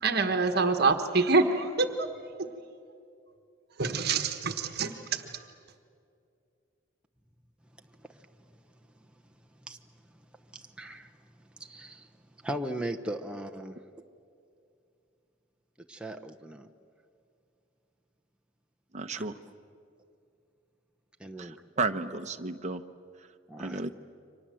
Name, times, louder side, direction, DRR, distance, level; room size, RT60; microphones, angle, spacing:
voice 1, 0.0-2.1 2.4-2.5 3.8-5.2, right 3 dB, 55° right, 6 dB, 1.3 m, -26 dB
voice 2, 10.5-11.1 11.6-12.1 12.4-13.8 15.9-16.7 19.1-19.2 21.2-21.6 23.5-23.8, right 1 dB, 5° right, 4 dB, 0.9 m, -38 dB
voice 3, 18.9-19.3 21.4-22.8 23.6-23.9, right 3 dB, 35° right, 7 dB, 1.0 m, -33 dB
29.5 x 24.5 x 7.7 m, 2.5 s
head